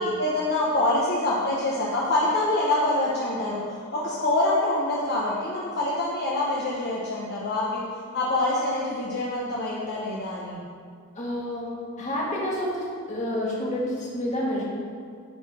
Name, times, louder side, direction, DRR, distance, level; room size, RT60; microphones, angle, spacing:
voice 1, 0.0-7.8 8.1-10.6, left 2 dB, 50° left, -6 dB, 0.9 m, -25 dB
voice 2, 11.1-11.7 12.0-14.6, left 1 dB, 35° left, -5 dB, 1.7 m, -29 dB
9.9 x 3.9 x 4.9 m, 2.1 s
head